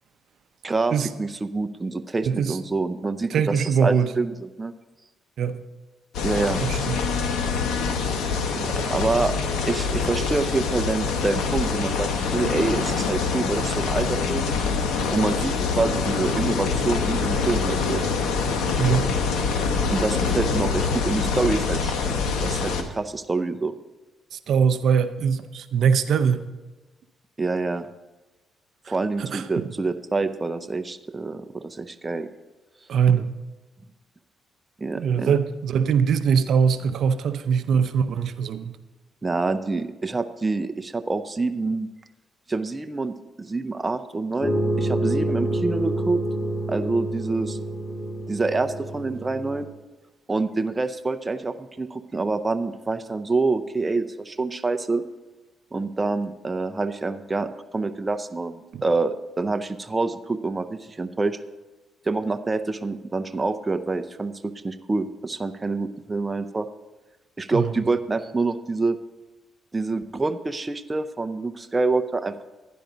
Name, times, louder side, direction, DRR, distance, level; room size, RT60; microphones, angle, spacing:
voice 1, 0.6-4.7 6.2-6.6 8.5-9.3 9.7-14.6 15.1-18.0 19.9-23.7 27.4-27.9 28.9-32.3 34.8-35.3 39.2-41.9 42.5-46.2 46.7-47.6 48.3-49.7 50.3-55.0 55.7-61.4 62.1-66.7 67.4-69.0 69.7-72.4, right 3 dB, 20° right, 9 dB, 0.5 m, -26 dB
voice 2, 2.3-2.6 3.3-4.1 5.4-5.6 6.6-7.0 18.8-19.1 24.3-26.4 29.2-29.7 32.9-33.3 35.0-38.8 58.7-58.8 67.5-67.7, right 7 dB, 70° right, 10 dB, 0.6 m, -22 dB
sound 1, 6.1-22.8, left 5 dB, 85° left, 1.0 m, -25 dB
sound 2, 44.4-49.6, right 1 dB, 35° left, 2.6 m, -27 dB
11.5 x 10.0 x 3.9 m, 1.1 s
cardioid pair, 90°, 0 cm